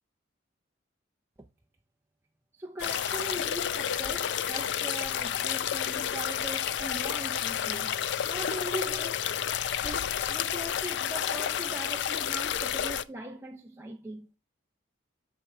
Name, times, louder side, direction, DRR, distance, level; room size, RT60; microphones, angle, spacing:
voice 1, 2.5-9.3 9.8-14.3, right 1 dB, 10° right, 0.4 m, -40 dB
sound 1, 2.8-13.0, left 9 dB, 55° left, 0.3 m, -30 dB
6.6 x 4.3 x 3.4 m
head